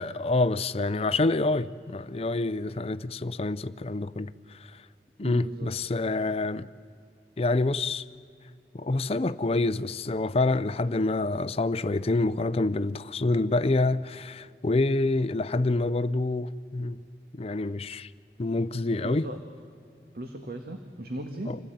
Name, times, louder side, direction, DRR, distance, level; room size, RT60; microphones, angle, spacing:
voice 1, 0.0-4.8 5.2-6.7 7.4-8.1 8.7-17.0 17.3-18.1 18.4-19.3 21.5-21.6, left 2 dB, 35° left, 0.5 m, -27 dB
voice 2, 5.2-5.7 19.0-19.4 20.1-21.5, right 1 dB, 60° right, 1.5 m, -37 dB
26.5 x 17.0 x 9.2 m
head